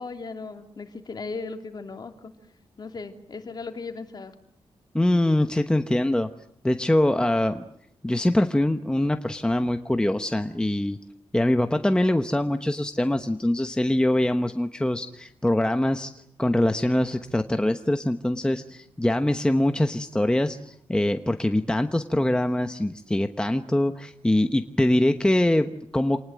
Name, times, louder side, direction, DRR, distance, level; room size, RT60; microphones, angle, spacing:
voice 1, 0.0-2.3 2.8-4.3, left 4 dB, 40° left, 5 dB, 3.0 m, -37 dB
voice 2, 4.9-6.3 6.6-7.6 8.0-11.0 11.3-16.1 16.4-26.2, left 1 dB, 10° left, 7 dB, 1.0 m, -23 dB
27.5 x 20.0 x 9.2 m, 0.72 s
wide cardioid pair, 140°, 10 cm